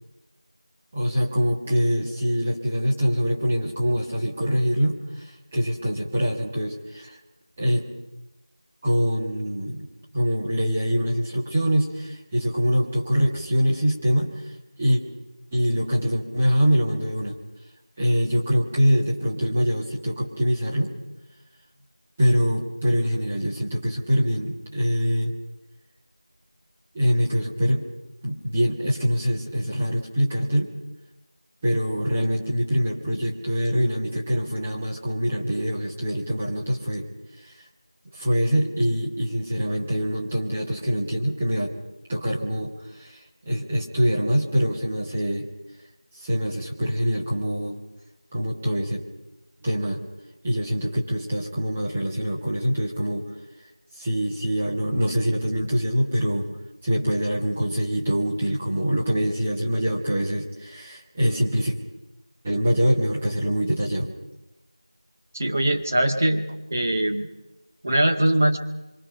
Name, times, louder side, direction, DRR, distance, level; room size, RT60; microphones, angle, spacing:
voice 1, 0.9-7.2 7.6-7.8 8.8-9.9 10.1-14.3 14.8-15.0 15.5-17.4 18.0-20.9 22.2-25.3 26.9-27.9 28.2-30.7 31.6-37.1 37.4-37.5 38.1-41.7 42.1-45.5 46.2-47.8 48.3-49.0 49.6-50.0 50.4-53.3 54.0-56.5 56.8-61.7 62.4-64.1, equal, 10° right, -4 dB, 1.5 m, -24 dB
voice 2, 65.3-66.4 66.7-67.3 67.8-68.6, right 1 dB, 25° right, 4 dB, 1.6 m, -21 dB
26.0 x 24.0 x 5.6 m, 0.99 s
figure-of-eight pair, 175°, 3 cm